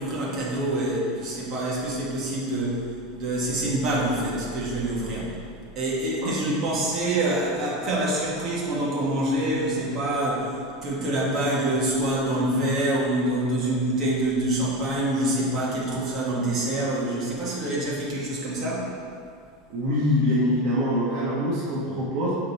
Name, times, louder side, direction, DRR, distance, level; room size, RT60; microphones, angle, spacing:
voice 1, 0.0-2.8 3.1-5.3 5.7-10.5 10.8-18.9, right 1 dB, 30° right, -5 dB, 1.5 m, -26 dB
voice 2, 6.2-6.6 19.7-22.3, left 1 dB, 45° right, -7 dB, 1.1 m, -24 dB
6.6 x 5.1 x 4.2 m, 2.2 s
supercardioid pair, 165°, 0 cm